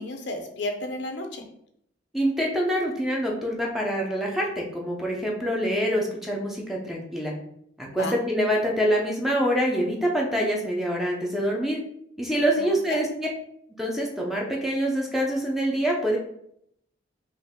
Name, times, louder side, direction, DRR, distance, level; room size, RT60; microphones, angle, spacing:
voice 1, 0.0-1.4 7.9-8.1 12.6-13.0, left 2 dB, 65° left, 4 dB, 0.7 m, -33 dB
voice 2, 2.1-7.3 7.8-11.8 12.2-13.3 13.8-16.2, equal, ahead, -2 dB, 0.7 m, -25 dB
5.4 x 2.7 x 3.6 m, 0.72 s
head